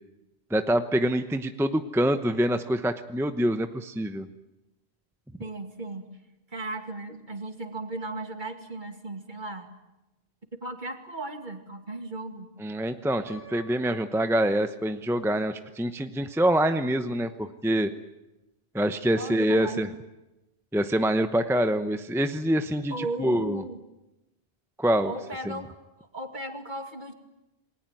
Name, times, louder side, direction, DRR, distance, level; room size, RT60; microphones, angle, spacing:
voice 1, 0.5-4.3 12.6-17.9 18.7-19.9 20.7-23.6 24.8-25.1 25.4-25.6, right 1 dB, 5° right, 9 dB, 0.8 m, -25 dB
voice 2, 5.4-6.1 6.5-9.7 10.6-12.5 19.2-19.9 22.9-23.8 25.1-27.1, right 2 dB, 45° right, 5 dB, 2.6 m, -36 dB
Piano, 13.3-15.2, left 1 dB, 55° left, 5.9 m, -49 dB
28.0 x 20.0 x 9.2 m, 0.98 s
omnidirectional pair, 1.1 m